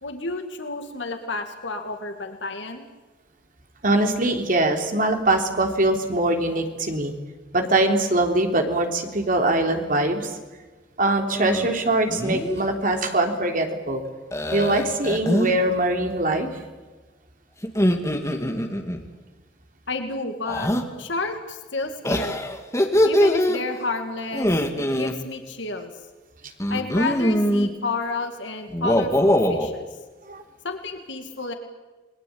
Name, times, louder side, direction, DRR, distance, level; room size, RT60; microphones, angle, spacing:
voice 1, 0.0-2.8 19.9-20.7 21.0-22.6 23.0-24.5 24.8-25.9 26.7-29.8 30.6-31.5, left 3 dB, 65° left, 6 dB, 2.3 m, -31 dB
voice 2, 3.8-7.1 7.5-10.3 11.0-14.0 14.5-16.5 30.3-30.4, right 2 dB, 45° right, 4 dB, 3.5 m, -22 dB
sound 1, 11.4-11.7 12.1-12.6 14.3-15.6 17.6-19.0 20.5-20.8 22.0-23.6 24.3-25.1 26.6-27.7 28.7-29.7, equal, 15° left, 2.3 m, -22 dB
29.0 x 21.0 x 8.7 m, 1.3 s
head